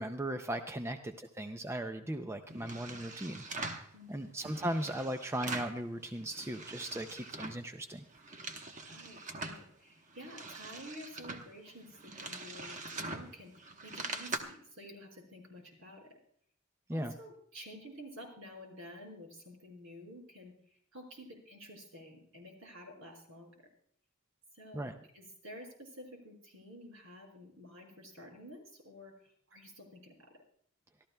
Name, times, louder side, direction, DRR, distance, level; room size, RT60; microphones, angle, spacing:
voice 1, 0.0-3.8 4.1-8.0 16.9-17.1 24.7-24.9, right 1 dB, 10° right, 7 dB, 0.5 m, -38 dB
sound 1, 2.5-3.9 4.4-5.8 6.1-7.7 8.0-9.6 10.1-14.4, right 3 dB, 35° right, 1.0 m, -43 dB
voice 2, 3.9-4.3 8.8-16.2 16.9-23.5 24.5-24.9 25.1-30.3, equal, 70° right, 1 dB, 4.7 m, -51 dB
25.5 x 13.5 x 2.2 m, 0.63 s
head